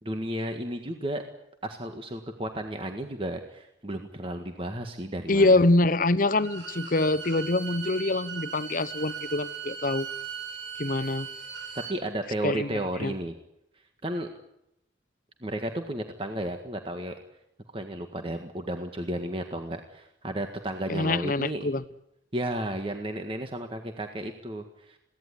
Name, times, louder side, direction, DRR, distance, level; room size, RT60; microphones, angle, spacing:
voice 1, 0.0-1.2 1.6-5.6 11.9-13.3 14.0-14.3 15.4-17.1 17.7-21.7 22.3-25.0, right 1 dB, 30° right, 5 dB, 1.7 m, -33 dB
voice 2, 5.3-10.1 10.8-11.3 12.4-12.7 13.0-13.1 20.9-21.8, left 2 dB, 50° left, 16 dB, 1.0 m, -24 dB
Bowed string instrument, 6.3-12.0, right 7 dB, 85° right, 6.5 m, -38 dB
22.5 x 17.0 x 9.8 m, 0.82 s
head